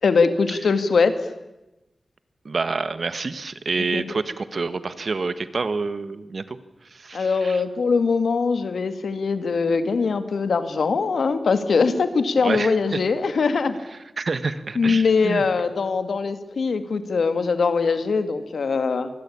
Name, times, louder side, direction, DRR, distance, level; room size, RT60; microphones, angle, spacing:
voice 1, 0.0-1.1 3.8-4.0 7.1-13.8 14.8-19.1, left 4 dB, 85° left, 10 dB, 2.2 m, -22 dB
voice 2, 2.4-6.6 6.8-7.6 12.4-13.0 14.2-15.5, right 4 dB, 55° right, 13 dB, 1.5 m, -28 dB
26.0 x 20.5 x 8.8 m, 0.99 s
wide cardioid pair, 125°, 0 cm